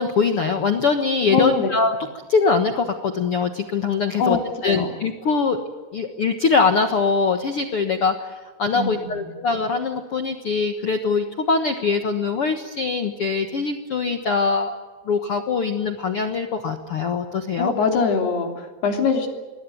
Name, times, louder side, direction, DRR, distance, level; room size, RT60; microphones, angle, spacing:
voice 1, 0.0-2.0 2.3-4.4 4.6-5.6 5.9-8.3 8.6-14.8 15.0-17.7, left 4 dB, 90° left, 7 dB, 1.2 m, -22 dB
voice 2, 1.3-1.7 4.2-4.9 8.7-9.3 17.6-19.3, left 4 dB, 70° left, 4 dB, 5.0 m, -23 dB
25.0 x 21.0 x 9.4 m, 1.3 s
omnidirectional pair, 4.9 m